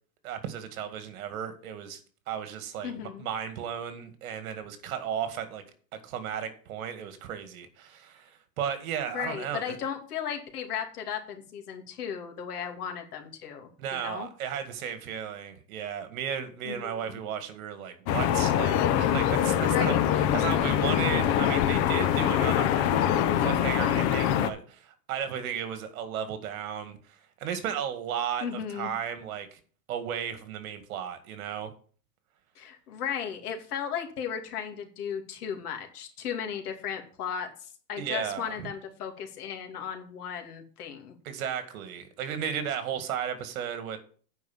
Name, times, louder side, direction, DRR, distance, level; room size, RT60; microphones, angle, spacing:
voice 1, 0.2-2.0 2.3-5.6 6.0-9.8 13.8-22.9 23.3-29.6 29.9-31.7 38.0-38.7 41.2-44.0, right 8 dB, 60° right, 2.0 m, -34 dB
voice 2, 2.8-3.3 9.1-14.3 16.6-17.2 19.7-20.0 28.4-28.9 32.6-41.1, left 8 dB, 75° left, 2.8 m, -36 dB
sound 1, 18.1-24.5, left 10 dB, 30° left, 0.7 m, -24 dB
9.3 x 5.3 x 7.2 m
supercardioid pair, 145°, 46 cm